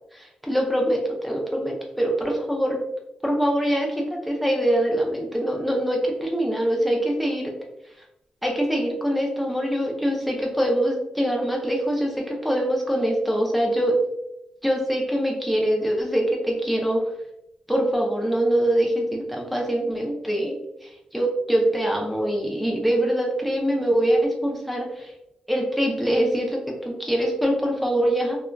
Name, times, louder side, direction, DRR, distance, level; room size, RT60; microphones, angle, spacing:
voice 1, 0.1-2.8 3.2-7.5 8.4-14.0 14.6-17.0 17.7-20.5 20.8-25.1 25.5-28.4, right 1 dB, ahead, -1 dB, 0.5 m, -24 dB
2.6 x 2.2 x 2.2 m, 0.84 s
cardioid pair, 105°, 2 cm